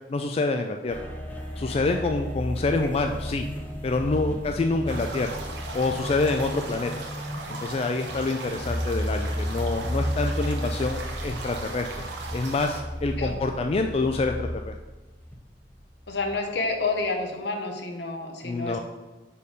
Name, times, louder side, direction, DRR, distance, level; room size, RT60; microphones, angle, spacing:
voice 1, 0.1-1.0 1.6-3.5 3.8-5.3 5.7-6.9 7.5-12.1 12.3-14.7 18.4-18.8, left 3 dB, 35° left, 5 dB, 0.3 m, -27 dB
sound 1, 0.9-16.3 16.8-17.1, equal, 10° left, 0.7 m, -33 dB
sound 2, 4.9-12.8, right 3 dB, 80° right, 0.9 m, -38 dB
voice 2, 16.1-18.8, left 3 dB, 70° left, 3 dB, 0.9 m, -29 dB
5.2 x 4.6 x 4.8 m, 1.2 s
head